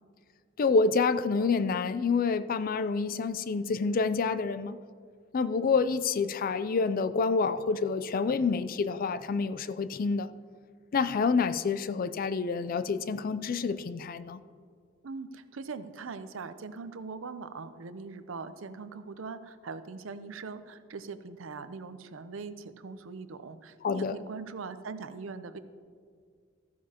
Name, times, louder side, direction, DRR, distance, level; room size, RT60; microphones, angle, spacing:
voice 1, 0.6-4.8 5.3-10.3 10.9-14.4 23.8-24.2, left 4 dB, 45° left, 13 dB, 0.4 m, -28 dB
voice 2, 15.0-25.6, right 4 dB, 75° right, 11 dB, 0.6 m, -41 dB
14.0 x 9.4 x 2.9 m, 2.1 s
head